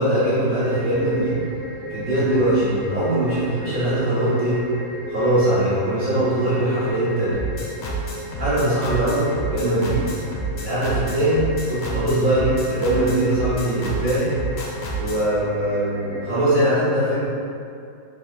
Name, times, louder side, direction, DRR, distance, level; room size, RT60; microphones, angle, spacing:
voice 1, 0.0-1.4 1.9-4.6 5.1-7.4 8.4-10.1 10.6-14.3 15.0-17.2, right 1 dB, 60° right, -11 dB, 0.5 m, -21 dB
sound 1, 0.6-16.4, right 1 dB, 50° left, 1.2 m, -36 dB
sound 2, 7.3-15.2, right 2 dB, 75° left, 1.2 m, -30 dB
3.5 x 3.0 x 2.2 m, 2.5 s
omnidirectional pair, 2.0 m